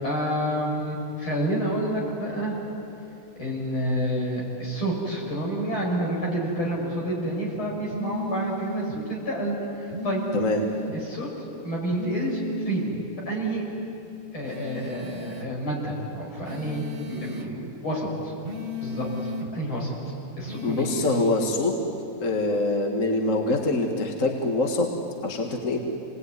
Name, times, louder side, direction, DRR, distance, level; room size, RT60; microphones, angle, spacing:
voice 1, 0.0-2.5 3.4-10.2 10.9-11.3 11.6-13.0 13.3-13.6 14.3-18.3 18.8-19.9 20.4-21.1, right 1 dB, 70° left, -2 dB, 6.9 m, -29 dB
sound 1, 7.9-9.0 9.9-11.0 11.9-13.0 14.4-15.5 16.4-17.5 18.4-19.5 20.4-21.5, left 1 dB, 40° right, 0.8 m, -34 dB
voice 2, 10.3-10.6 20.6-21.7 22.2-24.9 25.2-25.8, left 2 dB, 35° left, 2 dB, 2.0 m, -24 dB
28.0 x 20.0 x 9.6 m, 2.9 s
omnidirectional pair, 2.4 m